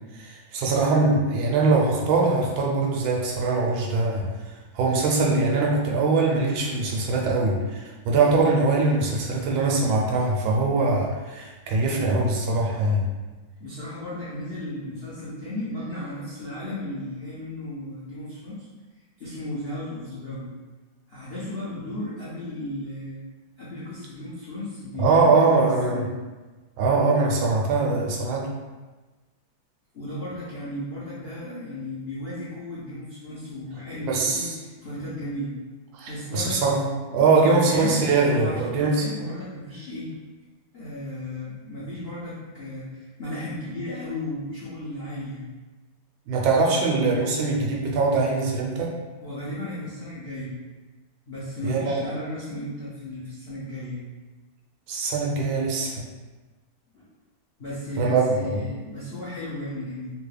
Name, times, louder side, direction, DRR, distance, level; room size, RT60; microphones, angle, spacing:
voice 1, 0.1-4.3 4.7-13.0 25.0-26.0 26.8-28.5 34.1-34.4 35.9-36.9 37.1-39.0 46.3-48.9 51.6-52.0 54.9-56.1 58.0-58.6, right 3 dB, 85° right, -1 dB, 1.4 m, -22 dB
voice 2, 13.6-18.7 19.2-20.5 21.1-23.2 23.6-25.6 25.9-26.1 29.9-35.5 36.1-36.6 37.1-38.0 38.4-40.1 40.7-45.4 49.2-50.5 51.3-54.0 56.9-57.1 57.6-60.1, left 1 dB, 85° left, -10 dB, 0.5 m, -35 dB
3.4 x 2.3 x 3.2 m, 1.2 s
omnidirectional pair, 2.2 m